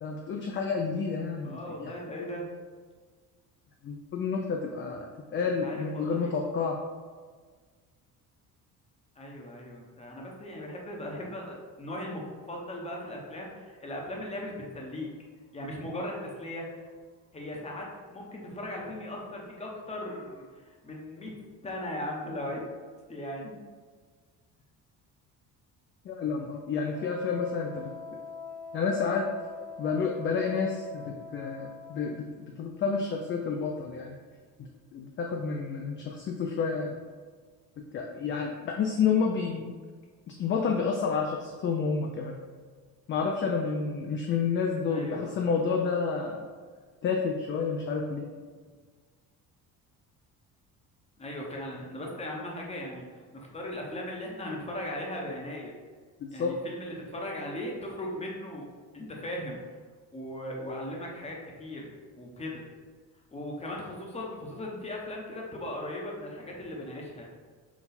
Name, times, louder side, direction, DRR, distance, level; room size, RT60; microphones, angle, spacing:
voice 1, 0.0-1.9 3.8-6.8 26.0-27.9 28.7-29.3 29.8-34.2 34.9-37.0 37.9-39.8 40.3-42.4 43.1-46.4 47.0-48.3 56.2-56.5, left 5 dB, 35° left, 1 dB, 0.4 m, -30 dB
voice 2, 1.4-2.5 5.6-6.3 9.2-12.2 12.5-15.1 15.5-16.9 17.3-21.3 21.6-22.6 23.1-23.6 44.9-45.4 51.2-55.7 56.3-58.6 58.9-59.6 60.1-62.6 63.3-67.3, left 1 dB, 20° left, -1 dB, 0.8 m, -38 dB
Wind instrument woodwind instrument, 26.9-32.2, left 5 dB, 80° left, 1.0 m, -44 dB
3.9 x 2.3 x 4.1 m, 1.5 s
cardioid pair, 115°, 35 cm